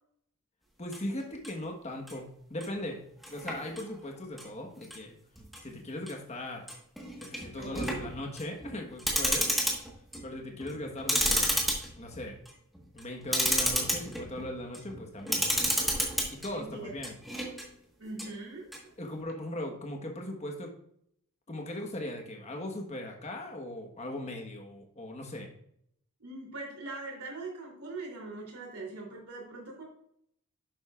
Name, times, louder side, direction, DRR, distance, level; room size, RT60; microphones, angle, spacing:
voice 1, 0.8-3.0 3.3-5.1 5.6-6.6 7.2-9.5 10.2-11.5 12.0-12.4 12.9-15.4 16.3-17.2 19.0-20.7 21.5-25.5, left 1 dB, 30° left, 2 dB, 1.3 m, -39 dB
sound 1, 0.9-1.5 2.1-2.2 2.6-2.8 3.2-4.1 4.4-4.5 4.8-5.0 5.4-5.6 6.1-6.2 6.7-10.3 10.6-16.5 16.9-17.6 18.2-18.3 18.7-18.8, equal, ahead, 1.4 m, -31 dB
voice 2, 7.5-8.2 16.5-16.9 18.0-18.9 26.2-29.8, right 3 dB, 90° right, -2 dB, 3.2 m, -42 dB
11.0 x 7.5 x 2.4 m, 0.70 s
head